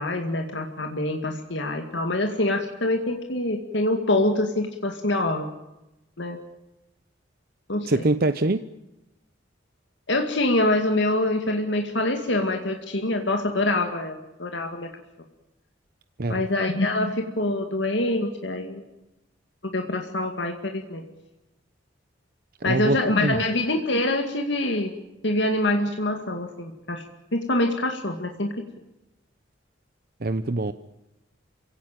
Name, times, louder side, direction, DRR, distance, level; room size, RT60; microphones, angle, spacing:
voice 1, 0.0-5.5 6.2-6.4 7.7-8.0 10.1-14.9 16.3-18.8 19.6-21.0 22.6-24.9 25.2-27.0 27.3-28.5, left 1 dB, 70° left, 4 dB, 2.3 m, -25 dB
voice 2, 7.9-8.6 16.2-16.5 22.6-23.4 30.2-30.7, right 2 dB, 50° right, 11 dB, 0.8 m, -24 dB
28.0 x 17.0 x 9.1 m, 0.96 s
head